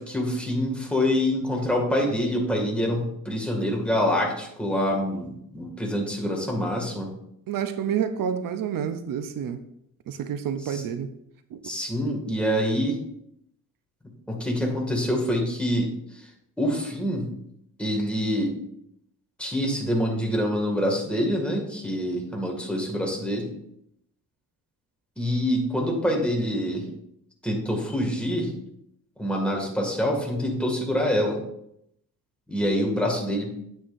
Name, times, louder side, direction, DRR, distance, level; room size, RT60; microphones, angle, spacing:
voice 1, 0.0-7.1 10.7-10.8 11.6-13.0 14.3-15.9 16.6-17.3 17.8-18.5 19.4-23.5 25.2-26.9 27.4-28.5 29.2-31.4 32.5-33.5, equal, 5° left, -1 dB, 2.1 m, -26 dB
voice 2, 7.5-9.6 10.1-11.1 11.5-11.7, right 8 dB, 75° right, 9 dB, 0.7 m, -29 dB
9.2 x 8.7 x 2.6 m, 0.76 s
cardioid pair, 120°, 33 cm